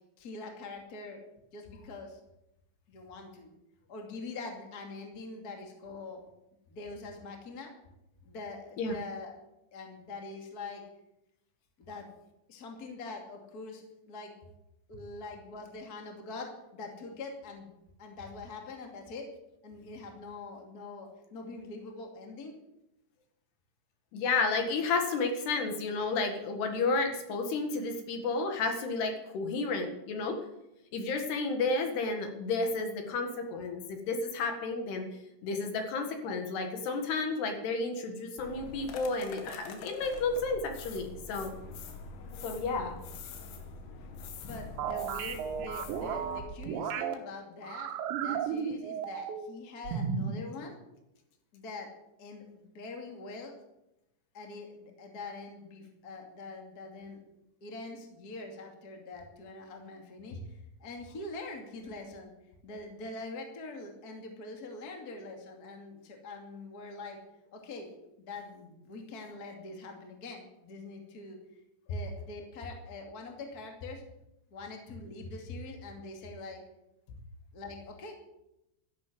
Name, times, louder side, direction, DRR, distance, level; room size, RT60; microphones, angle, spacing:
voice 1, 0.2-1.2 1.5-2.2 2.9-3.5 3.9-6.2 6.7-7.7 8.2-9.3 9.7-10.8 11.8-12.1 12.5-14.3 14.9-17.7 18.0-19.3 19.6-22.5 44.4-50.7 51.5-51.9 52.2-53.5 54.3-57.2 57.6-62.3 62.6-67.2 67.5-67.9 68.2-71.4 71.9-74.0 74.5-76.6 77.5-78.1, left 3 dB, 30° left, 2 dB, 2.1 m, -44 dB
voice 2, 24.1-30.4 30.9-35.1 35.4-41.5 42.4-43.0, left 3 dB, 70° left, 4 dB, 3.7 m, -32 dB
sound 1, 38.4-46.4, left 4 dB, 85° left, 4.0 m, -45 dB
sound 2, 44.8-47.1 47.6-49.5 49.8-50.4, right 7 dB, 80° right, 3.5 m, -34 dB
13.5 x 11.0 x 8.0 m, 0.87 s
omnidirectional pair, 5.1 m